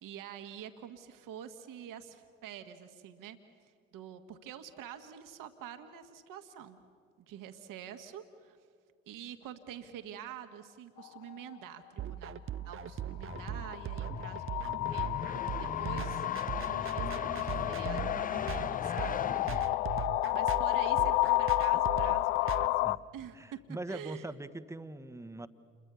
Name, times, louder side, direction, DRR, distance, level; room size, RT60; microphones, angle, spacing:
voice 1, 0.0-3.4 3.6-6.8 7.2-8.6 9.1-12.3 12.7-15.1 15.6-16.3 16.7-19.2 20.3-21.1 21.4-23.6 23.9-24.3, right 9 dB, 55° right, 7 dB, 1.7 m, -47 dB
sound 1, 11.0-11.2 13.2-23.0, left 18 dB, 70° left, 0.5 m, -31 dB
sound 2, 12.0-22.7, right 10 dB, 30° right, 0.7 m, -40 dB
sound 3, 12.9-20.5, left 6 dB, 20° left, 0.7 m, -40 dB
voice 2, 23.3-25.5, right 2 dB, 5° right, 12 dB, 1.3 m, -42 dB
29.0 x 22.5 x 6.9 m, 2.1 s
figure-of-eight pair, 50°, 40 cm